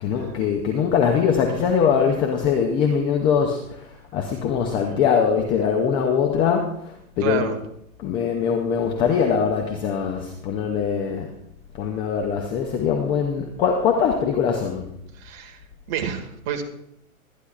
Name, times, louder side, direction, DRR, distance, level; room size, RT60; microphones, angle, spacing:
voice 1, 0.0-7.5 8.0-11.3 11.7-14.9, left 7 dB, 10° left, 2 dB, 0.4 m, -22 dB
voice 2, 7.2-7.6 15.1-15.6 15.9-16.6, right 8 dB, 35° right, 5 dB, 1.7 m, -29 dB
23.0 x 9.9 x 2.4 m, 0.75 s
hypercardioid pair, 130°, 43 cm